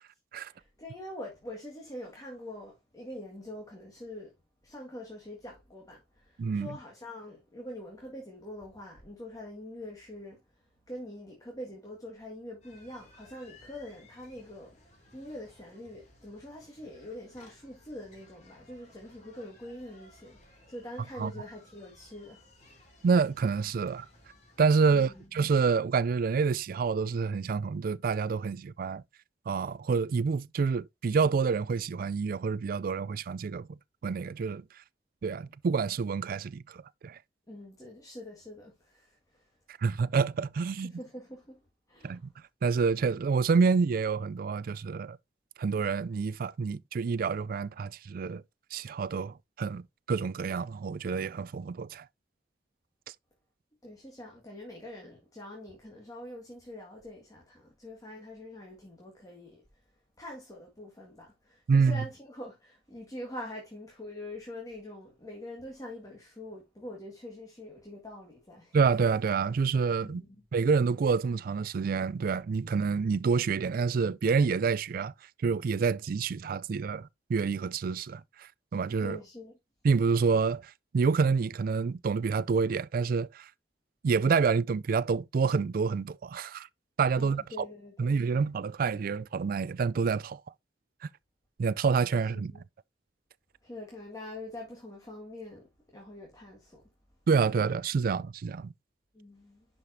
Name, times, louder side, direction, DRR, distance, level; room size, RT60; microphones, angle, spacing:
voice 1, 0.5-4.3 4.6-10.4 10.9-20.4 20.7-22.4 24.9-25.3 37.5-39.5 40.7-41.6 41.9-42.2 53.8-59.6 60.2-68.8 70.0-70.3 79.0-79.5 87.2-88.3 92.5-92.6 93.6-96.8 99.1-99.7, left 1 dB, 20° left, 1.7 m, -44 dB
sound 1, 12.6-25.3, left 1 dB, 40° left, 3.0 m, -59 dB
voice 2, 23.0-24.1 24.6-29.0 29.5-33.8 34.0-34.6 35.2-37.2 39.8-40.9 42.0-42.2 42.6-45.2 45.6-48.4 48.7-49.8 50.1-52.0 61.7-62.0 68.7-70.2 70.5-75.1 75.4-79.2 79.8-83.5 84.0-86.7 87.0-87.7 88.0-90.4 91.6-92.6 97.3-98.7, right 5 dB, 55° right, 0.3 m, -28 dB
10.5 x 5.0 x 2.6 m
head